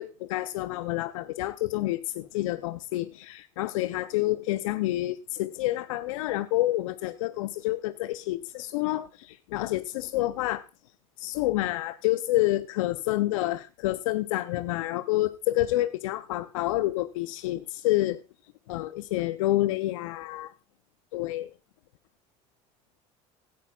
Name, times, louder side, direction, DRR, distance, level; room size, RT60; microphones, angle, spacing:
voice 1, 0.0-10.6 11.2-18.2 18.7-20.5 21.1-21.5, left 16 dB, 80° left, 13 dB, 0.5 m, -28 dB
17.0 x 11.5 x 2.3 m, 0.29 s
hypercardioid pair, 75°, 17 cm